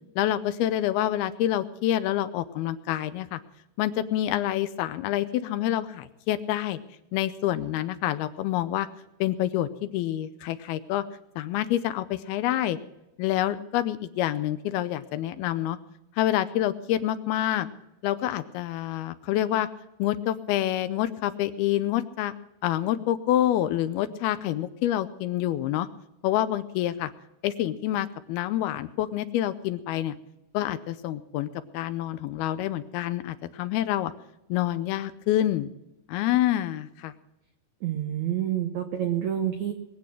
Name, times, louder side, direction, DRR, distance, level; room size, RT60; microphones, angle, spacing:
voice 1, 0.2-3.4 3.8-6.8 7.1-8.9 9.2-11.0 11.4-12.8 13.2-15.8 16.2-17.7 18.0-19.7 20.0-22.3 22.6-25.9 26.2-27.1 27.4-30.2 30.5-31.5 31.7-34.1 34.5-35.7 36.1-37.1, left 13 dB, 80° left, 12 dB, 2.4 m, -27 dB
voice 2, 37.8-39.7, right 10 dB, 85° right, 6 dB, 1.6 m, -28 dB
20.5 x 8.7 x 6.1 m, 0.88 s
omnidirectional pair, 4.7 m